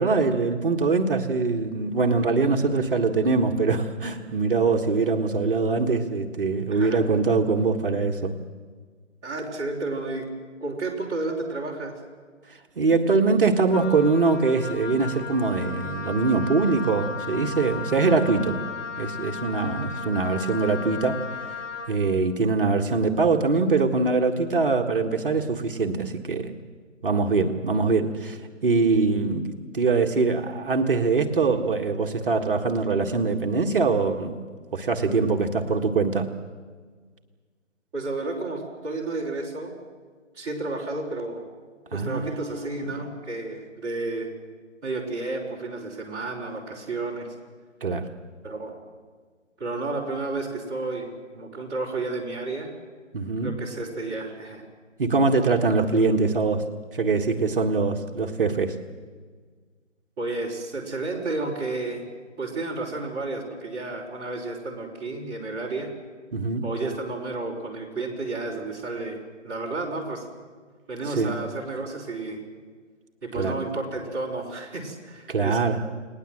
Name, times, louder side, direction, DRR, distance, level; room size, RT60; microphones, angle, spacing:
voice 1, 0.0-8.3 12.7-18.6 19.0-21.2 21.9-26.5 27.0-34.4 34.7-36.3 41.9-42.9 47.8-48.1 53.1-53.5 55.0-56.6 56.9-58.8 66.3-66.7 71.1-71.3 73.3-73.5 75.3-75.8, right 4 dB, 45° right, 4 dB, 1.7 m, -23 dB
voice 2, 6.7-7.0 9.2-10.3 10.6-12.0 37.9-39.8 40.3-41.4 41.9-44.3 44.8-47.3 48.4-48.7 49.6-52.7 53.4-54.7 60.2-62.0 62.4-65.9 66.6-69.2 69.4-70.3 70.9-72.4 73.2-75.6, right 2 dB, 15° right, -7 dB, 4.3 m, -31 dB
Wind instrument woodwind instrument, 13.7-22.0, left 5 dB, 70° left, 4.1 m, -35 dB
29.5 x 20.0 x 7.8 m, 1.6 s
hypercardioid pair, 170°, 38 cm